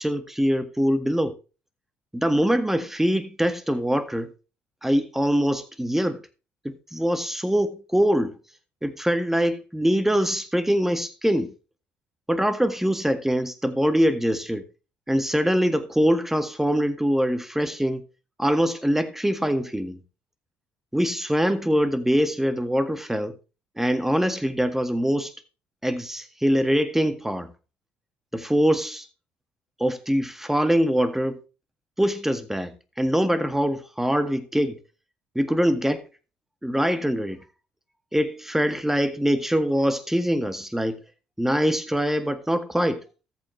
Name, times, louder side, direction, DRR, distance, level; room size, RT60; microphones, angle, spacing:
voice 1, 0.0-1.3 2.1-4.3 4.8-6.2 6.6-8.4 8.8-11.5 12.3-14.6 15.1-18.0 18.4-20.0 20.9-23.4 23.8-25.3 25.8-27.5 28.3-29.0 29.8-31.4 32.0-34.8 35.3-36.1 36.6-37.4 38.1-41.0 41.4-43.0, equal, 5° right, 1.7 m, -23 dB
14.0 x 7.4 x 3.2 m
hypercardioid pair, 50°, 6 cm